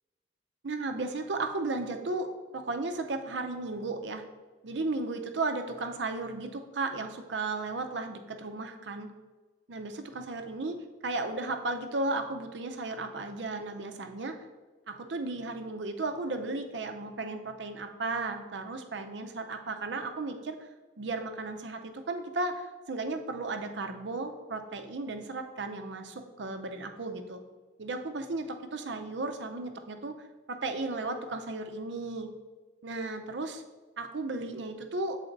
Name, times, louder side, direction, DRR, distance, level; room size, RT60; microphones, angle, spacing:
voice 1, 0.6-2.3 2.5-4.2 4.6-9.1 9.7-10.8 11.0-14.3 14.9-20.7 21.0-27.4 27.8-30.1 30.5-32.3 32.8-33.6 34.0-35.2, right 3 dB, 90° right, 6 dB, 0.7 m, -35 dB
7.2 x 4.2 x 3.9 m, 1.3 s
head